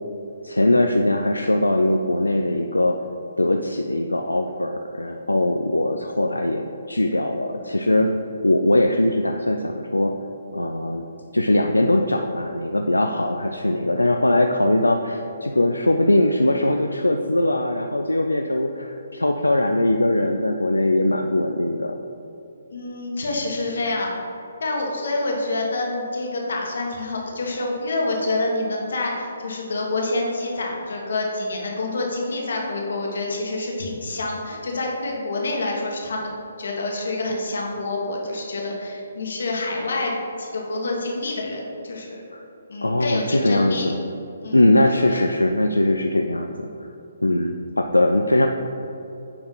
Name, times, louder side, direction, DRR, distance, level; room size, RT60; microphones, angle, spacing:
voice 1, 0.4-3.0 3.4-8.1 8.4-10.1 10.5-11.0 11.3-22.0 42.3-42.4 42.8-44.0 44.5-46.7 47.2-48.5, left 1 dB, 90° left, 4 dB, 0.4 m, -21 dB
voice 2, 22.7-24.1 24.6-42.2 42.7-43.9 44.4-44.6 45.1-45.2, left 2 dB, 65° left, -1 dB, 1.6 m, -27 dB
9.7 x 4.3 x 3.9 m, 2.8 s
figure-of-eight pair, 135°, 0 cm